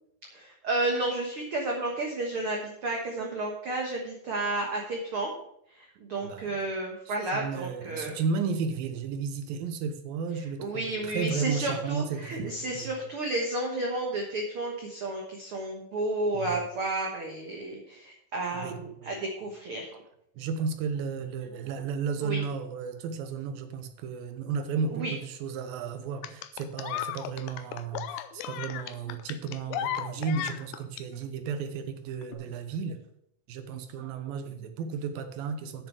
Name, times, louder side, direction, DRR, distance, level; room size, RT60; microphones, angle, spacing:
voice 1, 0.3-5.3 5.8-8.2 10.6-19.9 22.2-22.4 24.9-25.1, right 2 dB, 55° right, 0 dB, 1.7 m, -32 dB
voice 2, 6.2-6.6 7.1-12.9 16.3-16.6 18.5-19.1 20.4-33.0 33.5-35.9, right 5 dB, 85° right, 8 dB, 2.8 m, -33 dB
sound 1, 26.2-31.0 32.2-32.3, left 11 dB, 80° left, 1.8 m, -35 dB
8.7 x 7.0 x 6.5 m, 0.73 s
omnidirectional pair, 4.1 m